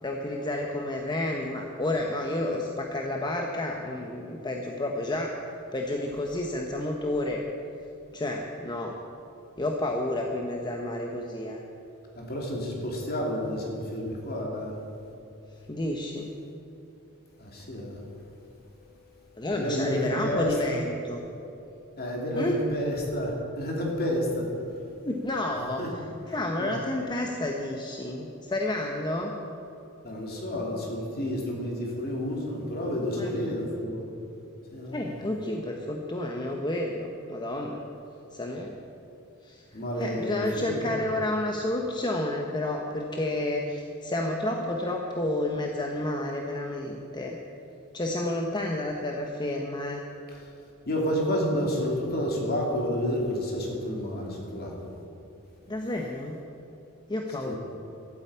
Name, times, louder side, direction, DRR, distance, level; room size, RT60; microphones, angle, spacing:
voice 1, 0.0-5.3 5.7-7.4 8.1-9.0 9.6-11.6 15.7-16.3 19.4-21.2 22.3-22.6 25.0-26.0 26.3-29.3 33.2-33.5 34.9-37.8 38.3-38.7 39.4-47.4 47.9-50.0 55.7-56.4 57.1-57.5, left 1 dB, 20° left, 1 dB, 0.9 m, -30 dB
voice 2, 12.1-14.8 17.4-18.0 19.5-20.8 22.0-24.5 25.8-25.9 26.6-26.7 30.0-34.1 34.7-35.0 39.7-41.0 50.9-54.7 57.5-57.6, equal, 45° left, -1 dB, 2.9 m, -30 dB
12.5 x 8.8 x 8.6 m, 2.8 s
head